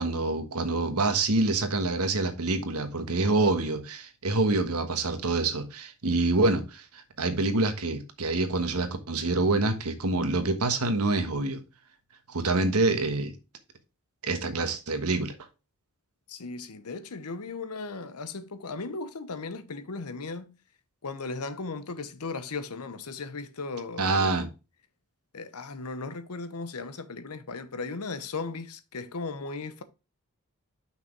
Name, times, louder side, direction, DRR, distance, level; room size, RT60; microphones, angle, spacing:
voice 1, 0.0-11.6 12.3-13.3 14.2-15.3 24.0-24.5, right 2 dB, 85° right, 1.3 m, -26 dB
voice 2, 16.3-20.5 21.0-24.5 25.3-29.8, left 3 dB, 90° left, 0.9 m, -37 dB
6.1 x 5.8 x 4.5 m
head